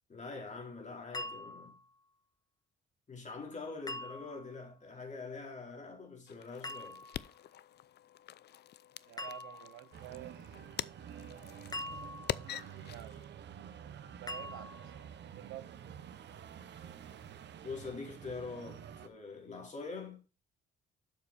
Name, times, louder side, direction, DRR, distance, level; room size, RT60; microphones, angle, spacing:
voice 1, 0.1-1.8 3.1-7.0 17.6-20.2, left 4 dB, 40° left, 4.3 m, -44 dB
sound 1, 1.1-1.9 3.9-4.6 6.6-7.3 9.2-9.9 11.7-12.6 14.3-15.0, left 2 dB, 20° left, 1.1 m, -43 dB
sound 2, 6.3-13.3, left 11 dB, 55° left, 0.5 m, -45 dB
voice 2, 9.1-10.4 12.2-13.3 14.1-14.7 15.3-15.8, right 15 dB, 85° right, 0.6 m, -49 dB
sound 3, 9.9-19.1, right 8 dB, 65° right, 1.1 m, -49 dB
7.6 x 6.7 x 4.3 m
cardioid pair, 90°, 20 cm